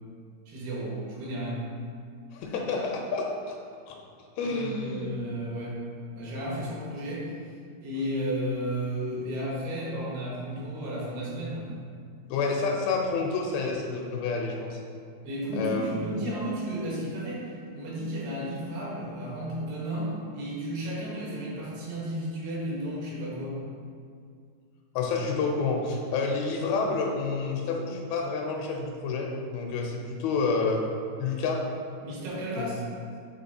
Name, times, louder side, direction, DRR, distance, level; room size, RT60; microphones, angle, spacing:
voice 1, 0.5-1.6 4.4-5.8 6.2-7.3 7.8-11.7 15.2-23.6 32.0-32.8, equal, 80° right, -5 dB, 3.3 m, -33 dB
voice 2, 2.3-3.6 3.9-4.0 4.4-5.1 12.3-14.8 15.5-16.0 25.0-30.8 31.2-31.6 32.6-32.7, left 4 dB, 85° left, 0 dB, 2.4 m, -29 dB
9.2 x 4.0 x 2.7 m, 2.2 s
omnidirectional pair, 4.5 m